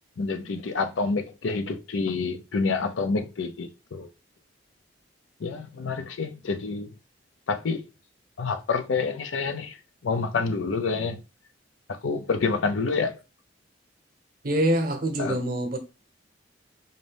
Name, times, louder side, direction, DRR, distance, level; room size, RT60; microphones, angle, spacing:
voice 1, 0.2-4.1 5.4-6.9 7.5-7.8 8.4-9.8 10.0-11.2 12.0-13.1 15.2-15.4, left 4 dB, 90° left, 0.5 m, -28 dB
voice 2, 14.4-15.8, right 1 dB, 50° right, 0.8 m, -25 dB
4.1 x 2.6 x 3.3 m
head